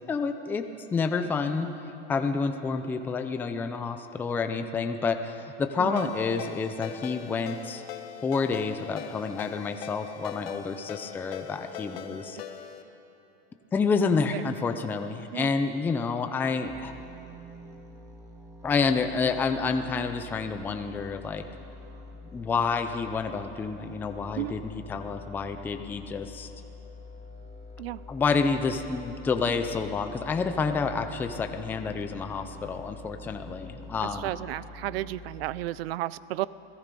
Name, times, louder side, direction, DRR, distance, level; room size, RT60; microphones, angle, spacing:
voice 1, 0.1-1.7 2.1-7.8 8.2-12.4 13.7-16.9 18.6-21.4 22.3-26.5 28.1-34.3, left 4 dB, 5° left, 7 dB, 0.4 m, -29 dB
voice 2, 5.8-6.1 14.3-14.4 15.3-15.5 24.4-24.5 27.8-28.0 34.0-36.5, right 16 dB, 75° right, 18 dB, 0.6 m, -33 dB
Ringtone, 6.0-12.8, left 9 dB, 80° left, 1.6 m, -41 dB
sound 1, 16.6-35.7, left 2 dB, 10° right, 1.8 m, -46 dB
28.0 x 17.5 x 5.3 m, 2.9 s
supercardioid pair, 170°, 30 cm